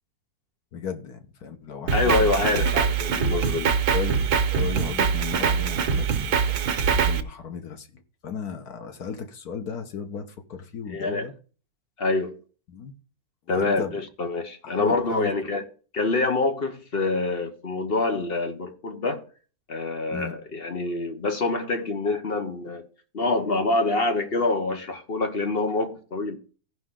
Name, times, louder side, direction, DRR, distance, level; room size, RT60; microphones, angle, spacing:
voice 1, 0.7-2.7 3.9-11.3 12.7-12.9 13.5-14.0 14.6-15.3 20.1-20.3, left 6 dB, 80° left, 1.7 m, -35 dB
voice 2, 1.9-3.7 10.9-11.3 12.0-12.4 13.5-15.6 15.9-19.2 19.7-22.9 23.1-26.4, left 3 dB, 45° left, 1.2 m, -26 dB
Drum kit, 1.9-7.2, right 6 dB, 85° right, 1.4 m, -23 dB
16.5 x 5.5 x 3.8 m
omnidirectional pair, 1.6 m